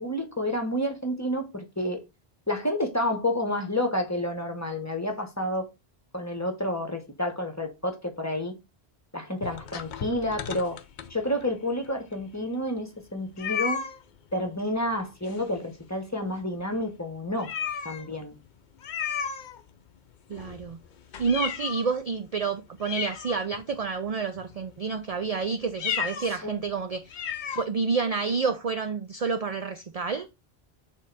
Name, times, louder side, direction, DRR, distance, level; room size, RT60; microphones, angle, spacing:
voice 1, 0.0-2.0 2.5-5.7 6.1-8.5 9.1-10.8 11.1-13.8 14.3-17.5 17.8-18.4 26.4-26.6, left 1 dB, 15° left, 1.0 m, -29 dB
Cat Crying, 9.4-11.5 12.1-12.2 12.4-12.5 13.4-14.0 15.3-15.8 16.1-16.3 16.7-16.8 17.4-18.1 18.8-19.9 20.3-22.0 22.4-22.5 22.8-23.8 24.4-24.7 25.7-26.3 26.7-26.8 27.1-27.6, left 7 dB, 55° left, 0.7 m, -34 dB
voice 2, 20.3-20.8 21.2-27.2 27.5-30.3, right 5 dB, 50° right, 0.5 m, -29 dB
6.3 x 3.7 x 4.0 m
omnidirectional pair, 1.1 m